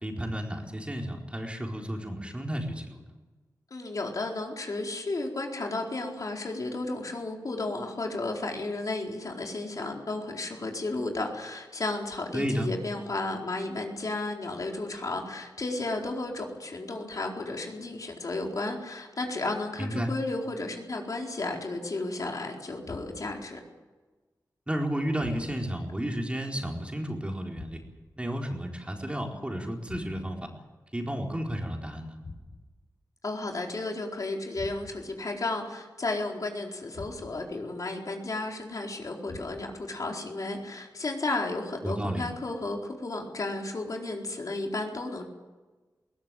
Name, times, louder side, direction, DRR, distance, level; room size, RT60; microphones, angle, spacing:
voice 1, 0.0-3.0 12.3-12.7 19.8-20.1 24.7-27.8 28.2-30.5 30.9-32.2 41.8-42.2, equal, 15° right, 1 dB, 4.3 m, -32 dB
voice 2, 3.7-23.6 33.2-45.2, left 2 dB, 55° left, 1 dB, 4.3 m, -33 dB
sound 1, 22.8-23.5 25.2-25.8 27.5-28.2 29.9-30.5 32.2-32.8 34.5-35.2 36.9-37.6 39.3-39.9, left 3 dB, 80° left, 6.3 m, -46 dB
21.0 x 19.0 x 9.1 m, 1.3 s
wide cardioid pair, 80°, 7 cm